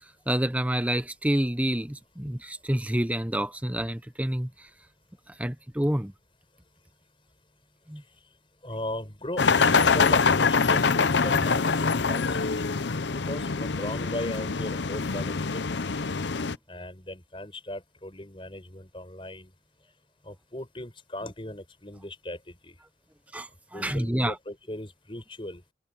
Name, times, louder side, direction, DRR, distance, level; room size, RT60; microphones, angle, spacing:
voice 1, 0.0-4.7 5.3-6.1 7.9-8.0 23.3-24.4, right 1 dB, 10° right, 0.8 m, -28 dB
voice 2, 8.6-12.4 13.1-16.0 16.7-19.5 20.2-22.8 23.7-25.6, left 1 dB, 30° left, 5.7 m, -38 dB
sound 1, 9.4-16.6, left 5 dB, 85° left, 0.8 m, -24 dB
head